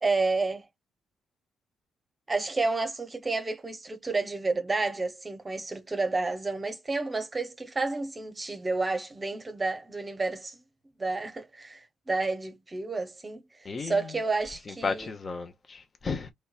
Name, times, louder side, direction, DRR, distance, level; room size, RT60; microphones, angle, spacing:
voice 1, 0.0-0.7 2.3-10.6 11.0-15.1, right 3 dB, 25° right, 0.9 m, -30 dB
voice 2, 13.6-14.1 14.7-16.3, left 4 dB, 35° left, 0.9 m, -34 dB
4.4 x 3.4 x 2.4 m
cardioid pair, 90°, 0 cm